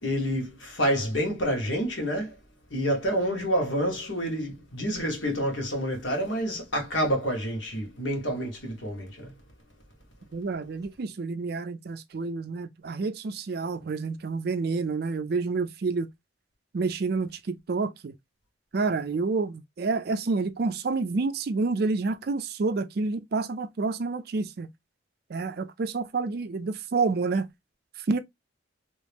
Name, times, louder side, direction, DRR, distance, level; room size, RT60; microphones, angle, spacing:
voice 1, 0.0-2.4 2.7-9.3, equal, 75° left, 1.5 m, -28 dB
voice 2, 10.3-16.1 16.7-18.1 18.7-24.7 25.3-27.5 28.1-28.2, right 4 dB, 55° right, 0.4 m, -29 dB
3.0 x 2.9 x 3.4 m
head